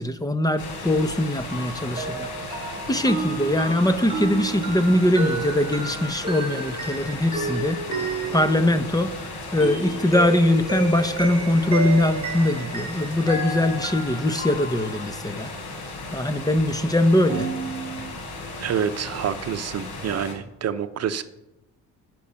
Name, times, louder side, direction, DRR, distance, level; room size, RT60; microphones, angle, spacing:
voice 1, 0.0-9.1 9.5-15.5 16.1-17.5, left 1 dB, 10° left, 10 dB, 1.0 m, -22 dB
sound 1, 0.6-20.3, left 2 dB, 80° left, 4.3 m, -36 dB
sound 2, 1.5-9.0 9.6-15.2 17.3-18.1, right 3 dB, 20° right, 5.2 m, -32 dB
voice 2, 18.6-21.2, right 8 dB, 55° right, 11 dB, 0.8 m, -27 dB
16.0 x 6.2 x 5.7 m, 0.87 s
cardioid pair, 90°, 30 cm